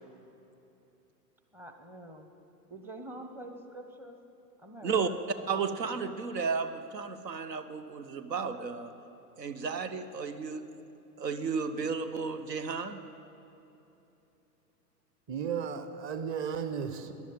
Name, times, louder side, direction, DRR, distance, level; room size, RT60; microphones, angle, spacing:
voice 1, 1.5-2.3 2.7-4.2 4.6-6.2, right 1 dB, 5° right, 5 dB, 0.6 m, -46 dB
voice 2, 5.5-8.9 9.4-10.7 11.2-13.0, right 5 dB, 80° right, 11 dB, 1.0 m, -33 dB
voice 3, 15.3-17.1, right 7 dB, 25° right, 10 dB, 0.9 m, -34 dB
13.5 x 10.5 x 8.7 m, 2.9 s
figure-of-eight pair, 100°, 49 cm